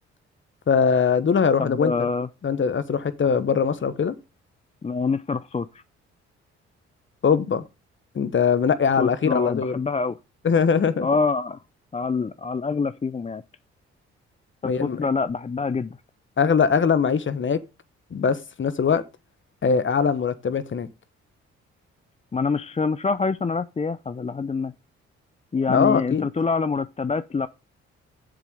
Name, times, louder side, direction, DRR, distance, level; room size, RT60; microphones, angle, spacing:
voice 1, 0.7-1.9 2.4-4.2 7.2-7.6 8.1-9.8 10.4-11.1 14.6-15.0 16.4-17.6 18.1-19.0 19.6-20.9 25.7-26.3, left 6 dB, 40° left, 1.2 m, -21 dB
voice 2, 1.6-2.3 4.8-5.8 9.0-10.2 11.0-11.6 11.9-13.4 14.6-16.0 22.3-24.7 25.5-27.5, left 4 dB, 25° left, 0.5 m, -25 dB
7.5 x 7.5 x 5.1 m
hypercardioid pair, 50°, 29 cm